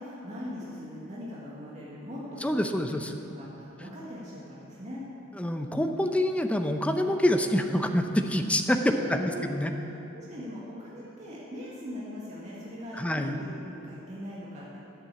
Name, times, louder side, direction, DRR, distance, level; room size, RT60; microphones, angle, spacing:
voice 1, 0.0-3.0 3.3-5.0 8.8-9.4 9.8-9.9 10.1-14.8, equal, 35° right, -6 dB, 1.7 m, -40 dB
voice 2, 2.4-3.2 5.3-9.7 12.9-13.3, left 1 dB, 5° left, 5 dB, 0.6 m, -26 dB
11.0 x 7.5 x 8.2 m, 2.8 s
head